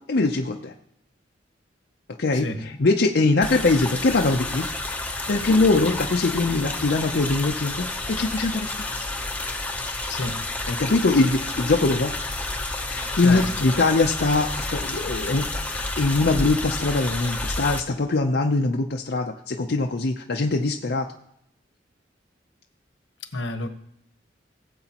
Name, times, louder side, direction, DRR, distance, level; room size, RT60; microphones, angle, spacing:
voice 1, 0.1-0.7 2.2-2.5 2.8-4.7 5.3-8.8 10.7-12.1 12.9-15.5 15.9-21.1, left 3 dB, 60° left, 2 dB, 0.6 m, -22 dB
sound 1, 3.4-17.8, left 2 dB, 10° left, 0.8 m, -30 dB
voice 2, 10.1-10.4 13.2-13.7 23.3-23.7, left 2 dB, 85° left, 7 dB, 1.1 m, -29 dB
17.5 x 7.8 x 2.9 m, 0.75 s
head